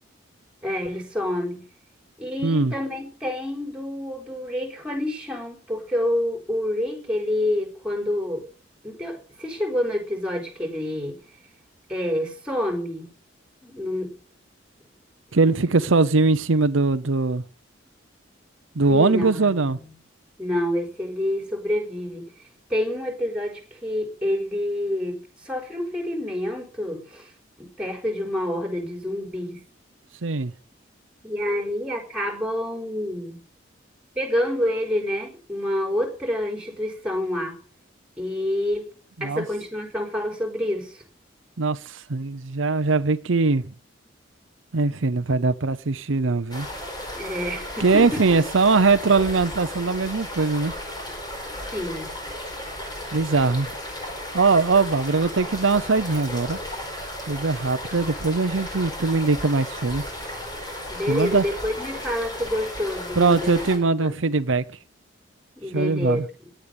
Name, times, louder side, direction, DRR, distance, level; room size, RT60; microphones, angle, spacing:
voice 1, 0.6-1.6 2.2-8.5 8.8-11.2 11.9-13.1 13.6-14.1 18.9-19.9 20.4-22.3 22.7-27.3 27.6-29.6 31.2-33.4 34.1-37.6 38.2-38.9 39.2-41.0 47.1-48.2 51.7-52.2 60.9-63.6 64.0-64.1 65.6-66.2, left 1 dB, 5° right, 4.5 m, -28 dB
voice 2, 2.4-2.7 15.3-17.4 18.8-19.8 30.2-30.5 39.2-39.4 41.6-43.7 44.7-46.7 47.8-50.7 53.1-53.7 54.3-56.6 57.3-60.0 61.1-61.4 63.2-64.6 65.7-66.2, right 3 dB, 85° right, 0.8 m, -21 dB
sound 1, 46.5-63.8, left 1 dB, 20° left, 5.0 m, -34 dB
17.0 x 10.5 x 5.4 m
head